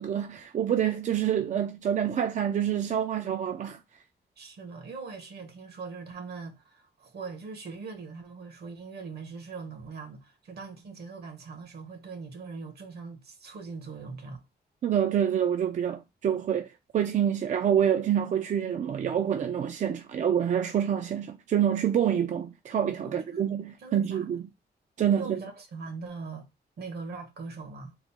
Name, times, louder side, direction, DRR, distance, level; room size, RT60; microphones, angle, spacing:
voice 1, 0.0-3.8 14.8-24.4 25.0-25.4, right 9 dB, 45° right, 0.4 m, -27 dB
voice 2, 4.4-14.4 23.0-23.5 23.8-24.2 25.1-26.5 26.8-28.0, right 4 dB, 70° right, 1.2 m, -41 dB
3.8 x 2.1 x 4.4 m
wide cardioid pair, 170°, 17 cm